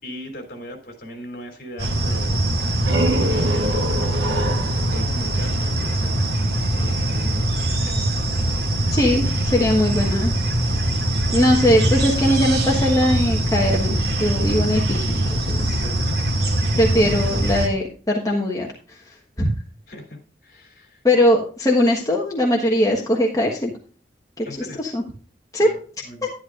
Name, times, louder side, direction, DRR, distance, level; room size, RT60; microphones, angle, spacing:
voice 1, 0.0-2.4 3.0-4.6 4.9-6.3 6.8-7.5 7.8-8.1 15.7-16.1 19.9-21.0 24.4-24.8 25.6-25.8 26.0-26.3, equal, 55° left, 3 dB, 3.0 m, -38 dB
sound 1, 1.8-17.7, right 1 dB, 65° right, 2.2 m, -22 dB
sound 2, 2.5-6.1, right 1 dB, 90° right, 1.0 m, -26 dB
voice 2, 8.9-10.3 11.3-15.8 16.8-18.7 19.4-19.5 21.0-23.7 24.4-25.0 25.5-25.7, left 1 dB, 20° left, -1 dB, 1.3 m, -20 dB
11.0 x 10.5 x 2.5 m, 0.40 s
head